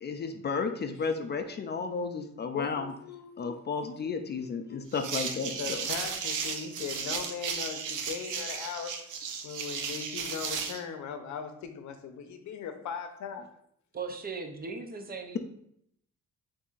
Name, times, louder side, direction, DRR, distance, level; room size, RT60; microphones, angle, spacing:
voice 1, 0.0-2.9 3.4-5.9, left 5 dB, 35° left, 7 dB, 0.4 m, -33 dB
voice 2, 2.5-3.6 5.6-8.9 9.4-13.5, left 7 dB, 70° left, 7 dB, 0.7 m, -39 dB
sound 1, 4.9-10.8, right 6 dB, 80° right, 0.6 m, -35 dB
voice 3, 13.9-15.4, right 4 dB, 30° right, 5 dB, 0.6 m, -38 dB
6.7 x 2.7 x 2.5 m, 0.71 s
cardioid pair, 90°, 30 cm